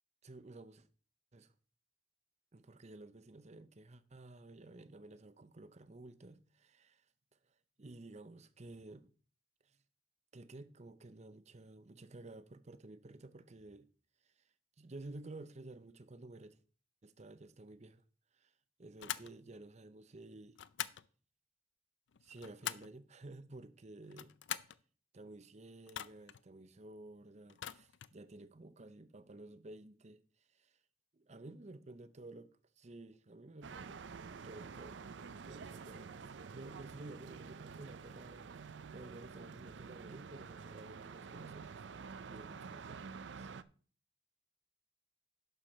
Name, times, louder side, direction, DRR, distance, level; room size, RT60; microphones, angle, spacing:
voice 1, 0.2-0.9 1.3-1.5 2.5-7.0 7.8-9.1 9.6-9.8 10.3-13.9 14.2-14.4 14.8-16.6 17.0-18.0 18.3-18.5 18.8-20.6 22.2-24.3 25.1-30.2 30.5-30.8 31.1-34.0 34.4-34.9 35.5-38.5 38.9-41.8 42.2-43.1 43.4-43.5, right 2 dB, 40° right, 0.7 m, -53 dB
sound 1, 19.0-19.3 20.6-21.1 22.1-23.0 24.0-24.8 25.9-26.4 27.5-28.2, left 11 dB, 80° left, 0.5 m, -43 dB
sound 2, 33.6-43.6, right 5 dB, 75° right, 0.5 m, -49 dB
11.5 x 6.8 x 4.4 m
head